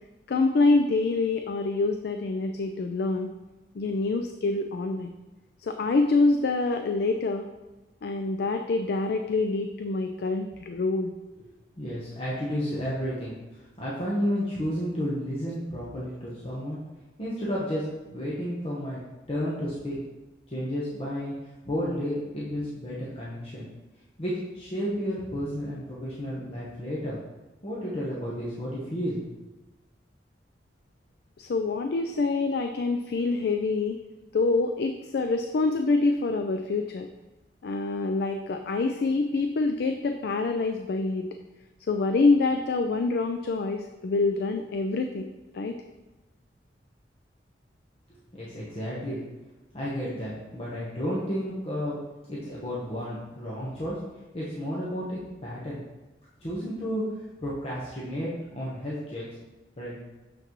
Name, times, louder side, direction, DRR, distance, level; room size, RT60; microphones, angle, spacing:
voice 1, 0.3-3.3 3.8-5.1 5.6-7.5 8.0-11.1 31.4-34.0 34.3-37.1 37.6-41.3 41.9-45.3 45.5-45.8, left 3 dB, 60° left, 6 dB, 0.4 m, -26 dB
voice 2, 11.8-16.8 17.2-19.0 19.3-20.0 20.5-23.7 24.2-27.2 27.6-29.2 48.3-49.2 49.7-52.0 52.3-54.0 54.3-55.8 56.4-59.3 59.8-60.0, equal, 35° left, -7 dB, 1.0 m, -32 dB
6.8 x 5.8 x 3.0 m, 1.1 s
head